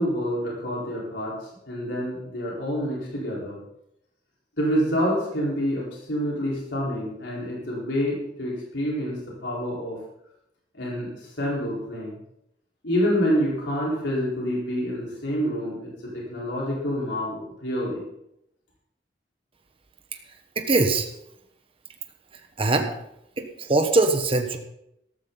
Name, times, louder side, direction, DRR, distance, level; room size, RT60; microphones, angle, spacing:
voice 1, 0.0-1.3 1.7-3.6 4.6-9.2 9.4-10.0 10.8-11.1 11.4-12.2 12.8-15.9 16.3-18.0, equal, 85° left, -4 dB, 4.3 m, -27 dB
voice 2, 20.5-21.1 22.6-22.9 23.4-24.6, right 3 dB, 30° right, 5 dB, 1.2 m, -22 dB
13.5 x 13.5 x 4.0 m, 0.80 s
head